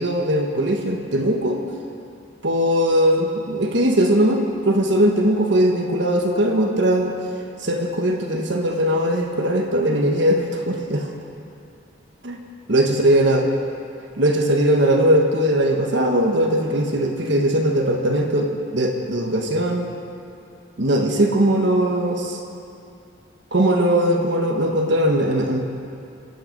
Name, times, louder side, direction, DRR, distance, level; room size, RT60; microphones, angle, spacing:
voice 1, 0.0-1.6 2.4-7.2 7.6-11.1 12.2-12.4 12.7-13.5 14.2-19.9 20.8-22.4 23.5-25.6, right 1 dB, 60° right, 2 dB, 1.3 m, -20 dB
25.5 x 9.3 x 5.3 m, 2.6 s
head